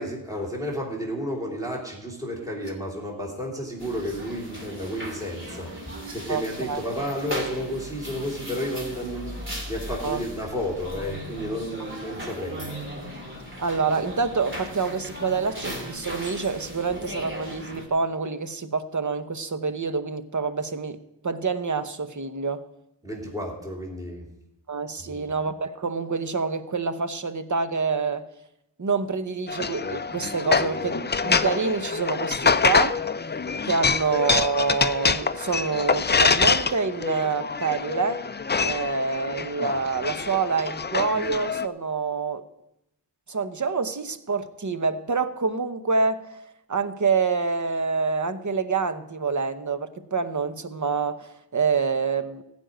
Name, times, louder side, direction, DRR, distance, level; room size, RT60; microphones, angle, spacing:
voice 1, 0.0-12.7 23.0-24.3 25.0-25.2, equal, 10° right, 2.9 m, -32 dB
sound 1, 2.0-2.7 3.1-3.6 4.6-6.1 6.4-7.0 7.3-7.7, right 6 dB, 75° right, 1.9 m, -49 dB
sound 2, 3.8-17.9, equal, 25° right, 2.9 m, -37 dB
voice 2, 13.6-21.0 21.2-22.6 24.7-28.2 28.8-33.0 33.7-38.2 38.6-42.4 43.3-46.4 46.7-52.4, right 4 dB, 40° right, 0.9 m, -27 dB
sound 3, 29.5-41.7, left 5 dB, 25° left, 0.4 m, -25 dB
15.5 x 5.3 x 9.0 m
wide cardioid pair, 75°, 44 cm